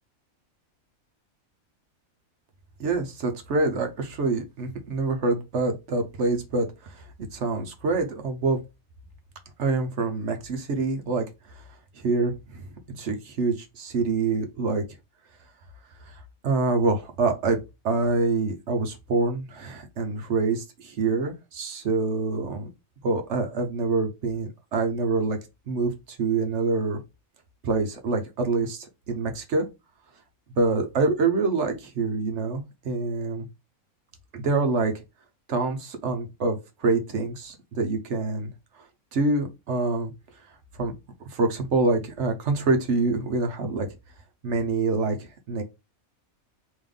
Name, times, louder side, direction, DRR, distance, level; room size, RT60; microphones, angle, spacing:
voice 1, 2.8-7.0 7.3-8.6 9.6-11.3 12.0-14.8 16.1-16.2 16.4-17.6 17.8-22.7 23.0-25.4 25.7-27.0 27.6-29.7 30.6-33.5 34.3-34.9 35.5-38.5 39.1-40.1 40.8-40.9 41.3-43.9 44.4-45.6, right 3 dB, 60° right, 1.0 m, -26 dB
3.5 x 3.1 x 3.7 m
omnidirectional pair, 1.5 m